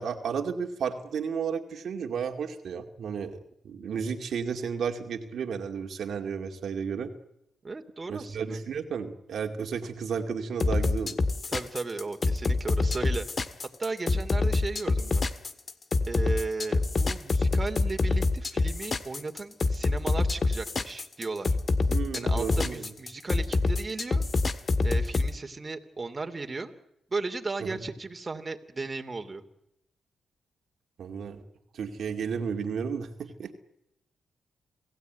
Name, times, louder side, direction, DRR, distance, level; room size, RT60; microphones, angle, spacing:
voice 1, 0.0-3.4 3.6-7.1 8.1-11.2 21.9-22.9 27.6-27.7 31.0-31.4 31.7-33.5, right 6 dB, 70° right, 4 dB, 2.3 m, -33 dB
voice 2, 7.6-8.6 11.5-13.3 13.8-15.2 16.1-21.5 22.1-24.2 24.8-26.7 27.1-29.4, right 3 dB, 35° right, 5 dB, 2.8 m, -35 dB
sound 1, 10.6-25.3, left 3 dB, 45° left, 1.8 m, -26 dB
28.0 x 17.0 x 9.4 m, 0.83 s
supercardioid pair, 60°, 0 cm